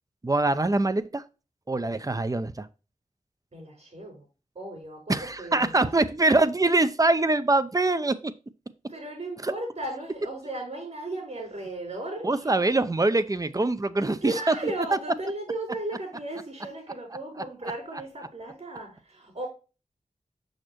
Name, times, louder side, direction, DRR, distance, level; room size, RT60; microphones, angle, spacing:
voice 1, 0.2-1.2 1.7-2.7 5.1-8.3 9.4-9.5 12.2-14.5 14.9-15.0, right 2 dB, 25° right, 0.6 m, -24 dB
voice 2, 3.5-4.2 4.5-5.9 8.9-12.6 14.2-19.5, right 2 dB, 60° right, 4.3 m, -36 dB
6.5 x 6.3 x 3.0 m
wide cardioid pair, 80°, 13 cm